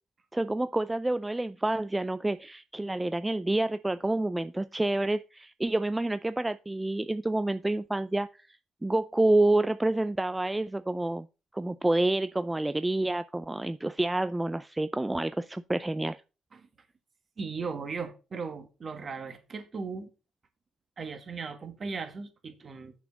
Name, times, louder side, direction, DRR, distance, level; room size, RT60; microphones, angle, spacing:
voice 1, 0.3-8.3 8.8-11.3 11.5-16.2, right 2 dB, 10° right, 0.4 m, -28 dB
voice 2, 17.4-20.1 21.0-22.9, right 4 dB, 40° right, 1.8 m, -37 dB
7.1 x 4.9 x 7.1 m
cardioid pair, 90°, 0 cm